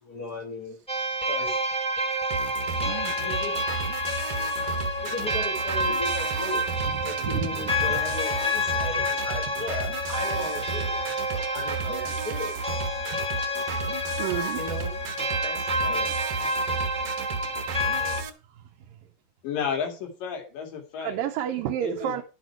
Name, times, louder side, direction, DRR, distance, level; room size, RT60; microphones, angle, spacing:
voice 1, 0.0-0.8 1.3-1.6 3.2-3.6 4.5-11.0 11.3-12.6 14.5-15.0 15.4-16.2 17.7-18.2, left 1 dB, 35° left, 1.9 m, -37 dB
sound 1, 0.9-18.2, left 1 dB, 5° left, 0.4 m, -29 dB
sound 2, 2.3-18.3, right 5 dB, 70° right, 2.1 m, -34 dB
voice 2, 2.8-3.1 6.9-7.4 13.1-13.2 14.2-14.6 17.5-17.6 21.0-22.2, right 10 dB, 85° right, 2.6 m, -30 dB
voice 3, 19.4-21.2 21.8-22.2, left 7 dB, 80° left, 3.8 m, -32 dB
10.5 x 8.1 x 4.5 m
omnidirectional pair, 3.9 m